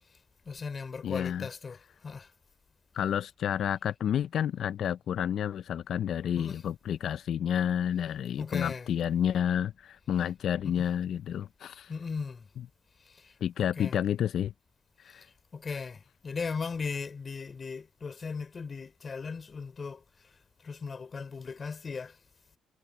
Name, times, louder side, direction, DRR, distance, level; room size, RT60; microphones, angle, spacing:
voice 1, 0.4-1.8 2.0-2.3 6.3-6.6 8.4-8.9 10.6-10.9 11.9-12.5 13.1-13.3 13.8-13.9 15.1-15.3 15.5-20.0 20.6-22.2, left 5 dB, 35° left, 3.4 m, -37 dB
voice 2, 1.0-1.5 2.9-11.9 12.6-12.7 13.4-14.5 15.1-15.3, left 9 dB, 65° left, 0.4 m, -30 dB
cardioid pair, 90°, 0 cm